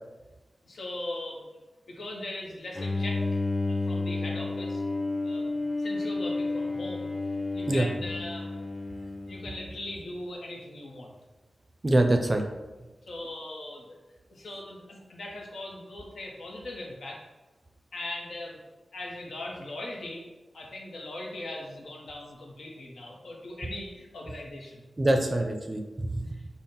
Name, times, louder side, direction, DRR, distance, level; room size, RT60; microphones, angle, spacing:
voice 1, 0.6-1.6 1.9-3.4 3.6-4.8 5.2-7.1 7.5-8.6 9.3-11.1 13.1-14.0 14.3-17.2 17.9-18.6 18.9-20.3 20.5-24.8 26.3-26.6, left 1 dB, 80° left, -1 dB, 0.7 m, -40 dB
Bowed string instrument, 2.7-10.0, left 3 dB, 35° left, 0.4 m, -31 dB
voice 2, 11.8-12.4 25.0-26.3, right 1 dB, 40° right, 4 dB, 0.4 m, -24 dB
3.6 x 2.1 x 4.1 m, 1.1 s
cardioid pair, 45°, 0 cm